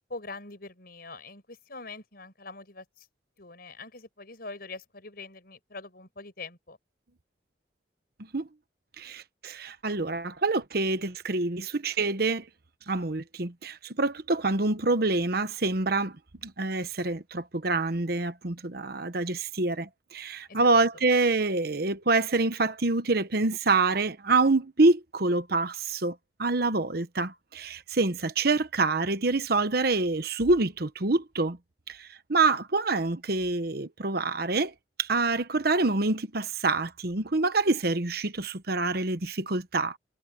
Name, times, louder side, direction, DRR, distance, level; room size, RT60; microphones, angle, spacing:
voice 1, 0.1-3.1 3.4-6.8 20.5-20.7, left 3 dB, 55° left, 6.7 m, -43 dB
voice 2, 9.0-12.4 12.9-16.1 16.4-31.6 31.9-34.7 35.0-40.0, right 3 dB, 55° right, 1.1 m, -26 dB
head